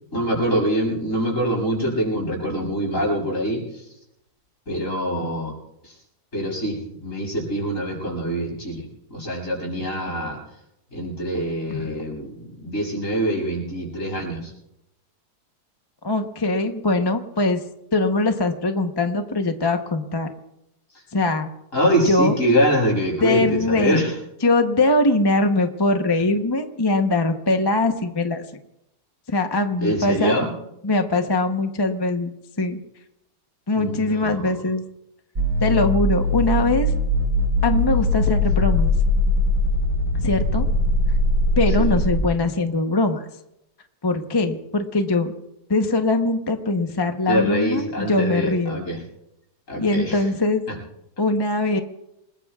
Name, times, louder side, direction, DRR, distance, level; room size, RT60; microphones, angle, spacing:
voice 1, 0.1-3.8 4.7-5.6 5.8-5.9 6.3-10.4 10.9-14.5 21.7-24.1 29.8-30.5 33.7-34.6 41.8-42.0 47.3-49.0 49.7-50.2 50.7-50.8, equal, 50° left, -1 dB, 7.6 m, -24 dB
voice 2, 16.0-17.6 17.9-20.3 21.1-21.5 22.1-22.4 23.2-24.0 24.4-28.4 29.3-30.4 30.8-32.3 32.6-32.8 33.7-34.8 35.6-36.9 37.6-38.9 40.2-40.7 41.6-43.3 44.0-45.3 45.7-48.8 49.8-50.6 51.2-51.8, left 2 dB, 20° left, 5 dB, 0.7 m, -21 dB
sound 1, 35.3-42.2, left 1 dB, 65° right, 6.0 m, -21 dB
28.0 x 20.5 x 2.4 m, 0.85 s
omnidirectional pair, 1.7 m